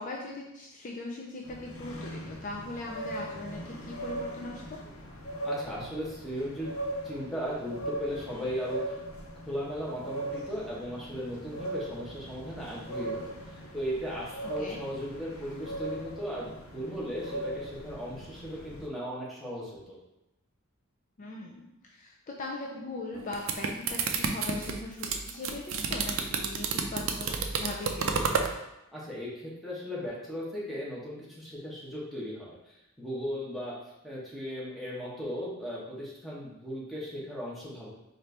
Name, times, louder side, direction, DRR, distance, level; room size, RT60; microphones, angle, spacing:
voice 1, 0.0-4.8 14.6-14.8 21.2-28.3, left 2 dB, 40° left, -1 dB, 0.4 m, -40 dB
sound 1, 1.4-18.9, right 1 dB, 75° left, 0.7 m, -39 dB
voice 2, 5.4-6.7 7.0-8.8 9.5-13.4 13.7-20.0 28.9-32.6 33.0-33.7 34.0-37.9, equal, ahead, -7 dB, 1.0 m, -37 dB
sound 2, 23.1-28.5, right 5 dB, 70° right, 0.4 m, -30 dB
4.1 x 2.5 x 3.3 m, 0.89 s
head